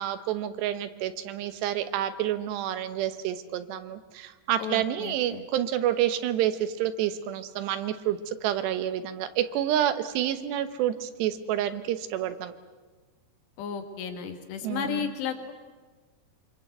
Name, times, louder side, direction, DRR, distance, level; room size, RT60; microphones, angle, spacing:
voice 1, 0.0-12.5 14.6-15.1, right 11 dB, 80° right, 10 dB, 3.3 m, -29 dB
voice 2, 4.6-5.4 13.6-15.5, left 8 dB, 85° left, 6 dB, 4.1 m, -34 dB
26.5 x 24.5 x 8.0 m, 1.3 s
omnidirectional pair, 4.8 m